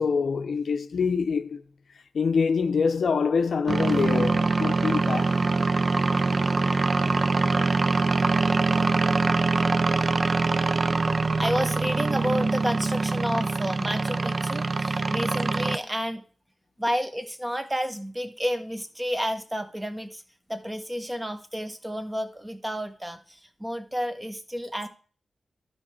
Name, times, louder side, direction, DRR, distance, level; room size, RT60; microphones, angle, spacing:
voice 1, 0.0-1.6 2.1-5.4, left 5 dB, 80° left, 0.5 m, -25 dB
sound 1, 3.7-15.8, right 3 dB, 50° right, 0.4 m, -24 dB
voice 2, 11.4-16.2 16.8-20.2 20.5-24.9, equal, 15° right, 1.1 m, -30 dB
11.5 x 4.6 x 4.3 m
cardioid pair, 65°, 0 cm